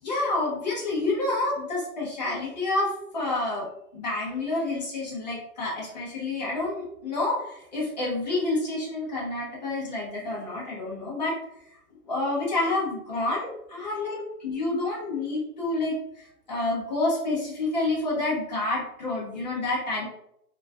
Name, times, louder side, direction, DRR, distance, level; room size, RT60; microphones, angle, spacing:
voice 1, 0.0-3.7 3.9-11.4 12.1-20.0, left 2 dB, 25° left, -6 dB, 0.7 m, -28 dB
2.9 x 2.4 x 2.3 m, 0.77 s
hypercardioid pair, 175°, 47 cm